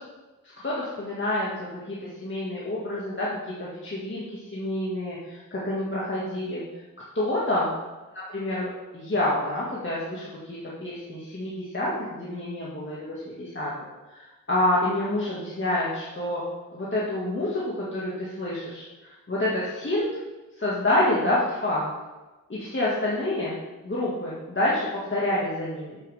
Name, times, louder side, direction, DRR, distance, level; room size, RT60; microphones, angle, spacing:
voice 1, 0.6-6.6 7.1-7.7 8.1-13.7 14.1-16.4 16.7-20.1 20.6-21.9 22.5-23.6 23.8-26.0, left 1 dB, 35° left, -7 dB, 2.0 m, -28 dB
8.6 x 7.7 x 3.6 m, 1.2 s
cardioid pair, 65°, 33 cm